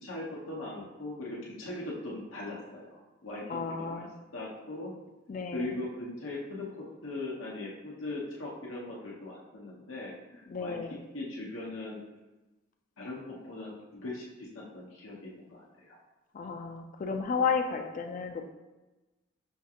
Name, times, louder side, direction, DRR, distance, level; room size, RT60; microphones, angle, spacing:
voice 1, 0.0-4.0 4.3-4.9 5.5-10.8 11.1-12.0 13.0-16.0, left 2 dB, 85° left, -5 dB, 0.8 m, -40 dB
voice 2, 3.4-4.1 5.3-5.8 10.5-11.0 16.3-18.5, left 5 dB, 40° left, 5 dB, 0.3 m, -33 dB
5.6 x 2.4 x 2.8 m, 1.1 s
head